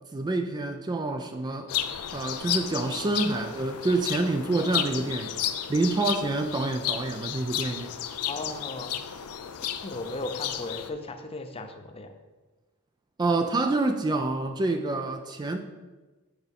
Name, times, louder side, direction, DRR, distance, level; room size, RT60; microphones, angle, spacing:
voice 1, 0.1-1.7 2.1-5.4 5.7-7.9 13.2-15.6, right 2 dB, 20° right, 6 dB, 0.3 m, -27 dB
sound 1, 1.7-10.9, left 10 dB, 75° left, 0.5 m, -33 dB
voice 2, 8.3-9.0 9.8-12.1, left 2 dB, 25° left, 6 dB, 0.6 m, -36 dB
8.0 x 5.4 x 3.5 m, 1.2 s
head